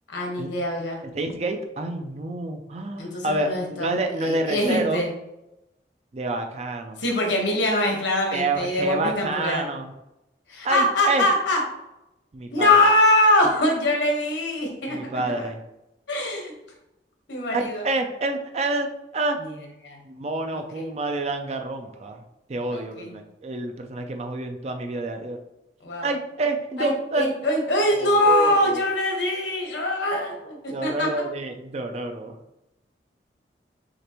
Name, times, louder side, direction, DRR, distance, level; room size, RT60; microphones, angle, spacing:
voice 1, 0.1-1.0 3.0-5.1 7.0-9.6 10.5-11.6 12.5-15.0 15.3-15.5 16.1-16.5 17.3-17.8 19.4-19.5 19.8-20.0 20.5-20.8 22.7-23.1 25.8-26.1 26.8-31.1, left 1 dB, 85° left, 0 dB, 1.3 m, -23 dB
voice 2, 1.1-5.0 6.1-7.0 8.3-9.9 10.6-11.3 12.3-12.8 14.9-15.6 17.5-19.4 20.1-22.2 22.5-25.4 26.0-27.3 27.9-28.8 30.7-32.4, right 2 dB, 35° right, 5 dB, 0.4 m, -28 dB
6.5 x 2.5 x 3.0 m, 0.91 s
head